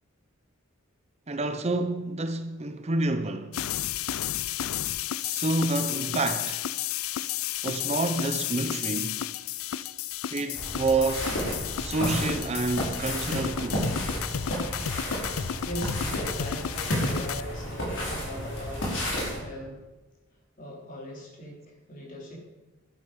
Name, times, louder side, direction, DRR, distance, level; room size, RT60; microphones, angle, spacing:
voice 1, 1.3-3.6 5.2-6.6 7.6-9.2 10.3-11.4 11.8-13.9, right 2 dB, 30° right, 0.6 m, -28 dB
sound 1, 3.5-17.4, left 11 dB, 85° left, 0.4 m, -32 dB
sound 2, 10.5-19.4, equal, 60° left, 4.9 m, -32 dB
voice 2, 15.6-19.8 20.6-22.4, equal, 40° left, 3.5 m, -40 dB
11.5 x 11.0 x 5.1 m
head